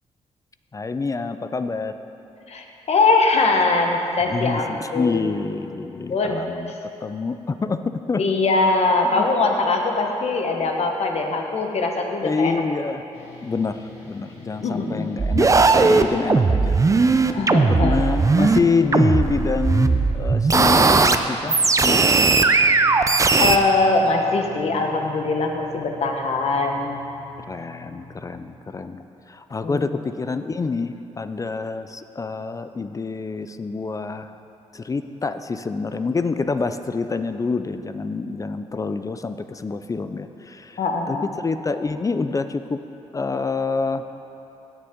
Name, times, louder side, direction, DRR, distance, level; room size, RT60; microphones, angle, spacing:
voice 1, 0.7-2.0 4.2-6.7 7.0-8.2 9.0-9.2 12.2-13.1 13.4-16.8 17.7-22.1 27.5-34.4 34.7-40.8 41.1-42.8 43.1-44.0, left 4 dB, 30° left, 10 dB, 0.4 m, -26 dB
voice 2, 2.5-5.3 6.1-6.4 8.2-12.6 14.6-15.1 17.3-18.0 23.4-27.0 29.6-29.8 40.8-41.3, left 3 dB, 60° left, 2 dB, 1.2 m, -22 dB
sound 1, 13.1-28.4, left 2 dB, 85° left, 2.1 m, -44 dB
sound 2, 15.2-18.6 18.9-21.2 21.5-23.6, right 4 dB, 25° right, 0.5 m, -17 dB
15.5 x 6.7 x 3.8 m, 2.9 s
cardioid pair, 75°, 12 cm